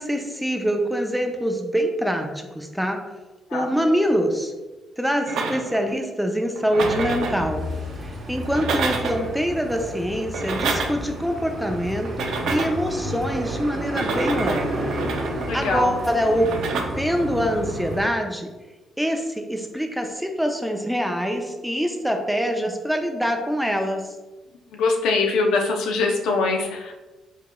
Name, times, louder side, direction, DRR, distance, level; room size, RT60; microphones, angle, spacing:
voice 1, 0.0-3.0 3.5-4.5 5.0-7.7 8.0-14.9 15.5-16.5 16.7-18.5 19.0-24.2, equal, ahead, 4 dB, 0.5 m, -24 dB
sound 1, 5.3-5.9 6.6-7.5 8.4-9.3 10.2-11.1 12.1-12.9 13.8-15.5 16.4-16.8, right 4 dB, 80° right, 0.5 m, -28 dB
sound 2, 6.8-18.0, equal, 55° right, 1.1 m, -31 dB
voice 2, 15.0-16.0 24.7-26.9, left 3 dB, 85° left, 2 dB, 0.6 m, -23 dB
4.8 x 3.9 x 2.3 m, 1.1 s
cardioid pair, 90°, 0 cm